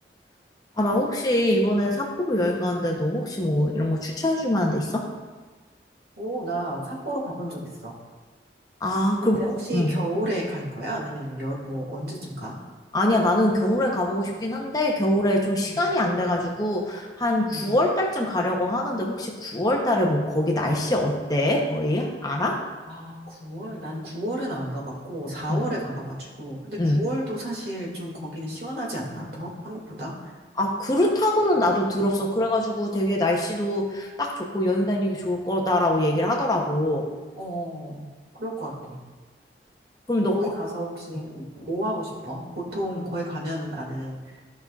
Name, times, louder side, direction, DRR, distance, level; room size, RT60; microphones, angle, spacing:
voice 1, 0.8-5.0 8.8-9.9 12.9-22.6 25.5-25.6 26.8-27.0 30.6-37.1 40.1-40.5, left 1 dB, 20° left, 0 dB, 0.8 m, -23 dB
voice 2, 6.2-7.9 9.2-12.5 15.7-15.9 17.5-17.8 22.9-30.4 37.4-38.1 38.3-39.0 40.3-44.4, right 1 dB, 60° right, -3 dB, 2.1 m, -32 dB
14.0 x 5.4 x 2.4 m, 1.3 s
head